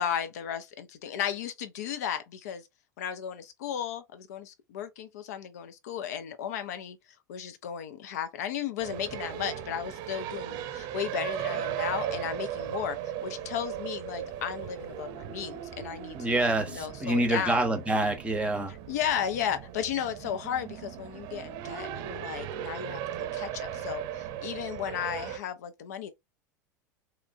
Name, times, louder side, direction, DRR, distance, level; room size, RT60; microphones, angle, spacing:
voice 1, 0.0-2.6 3.0-7.0 7.3-17.6 18.7-26.1, left 9 dB, 60° left, 0.4 m, -34 dB
sound 1, 8.8-25.4, right 10 dB, 45° right, 0.6 m, -37 dB
voice 2, 16.1-18.7, right 2 dB, 10° right, 0.7 m, -27 dB
3.0 x 2.3 x 2.2 m
figure-of-eight pair, 80°, 10 cm